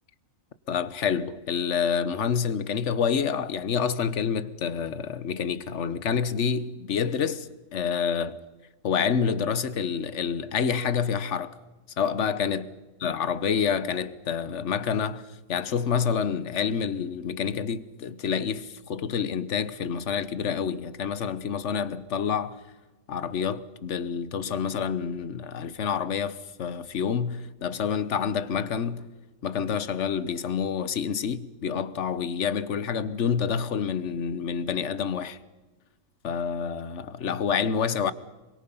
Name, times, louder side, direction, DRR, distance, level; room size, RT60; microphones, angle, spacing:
voice 1, 0.7-8.4 8.8-11.5 12.0-12.6 13.0-22.6 23.1-29.1 29.4-35.4 36.2-38.1, left 7 dB, 60° left, 1.3 m, -28 dB
27.0 x 23.5 x 5.5 m
omnidirectional pair, 1.4 m